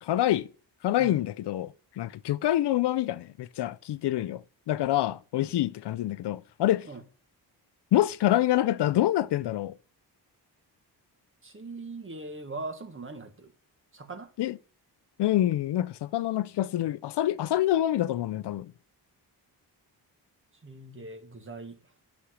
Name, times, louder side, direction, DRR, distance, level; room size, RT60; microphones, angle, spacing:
voice 1, 0.0-0.5 0.8-6.9 7.9-9.7 14.4-14.6 15.2-18.7, left 13 dB, 75° left, 0.5 m, -26 dB
voice 2, 11.4-13.5 13.9-14.3 20.6-21.8, right 3 dB, 30° right, 1.6 m, -40 dB
10.0 x 6.3 x 6.3 m
wide cardioid pair, 125°, 42 cm